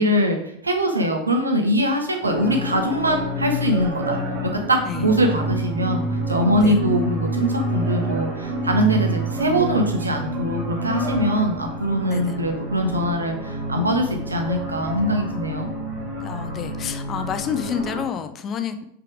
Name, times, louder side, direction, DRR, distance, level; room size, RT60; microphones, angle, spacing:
voice 1, 0.0-15.7, equal, 80° right, 3 dB, 1.2 m, -22 dB
sound 1, 2.2-18.0, right 1 dB, 35° right, 2.0 m, -28 dB
voice 2, 16.2-18.8, left 8 dB, 30° left, 9 dB, 0.7 m, -29 dB
5.8 x 5.0 x 4.8 m, 0.72 s
figure-of-eight pair, 90°, 0 cm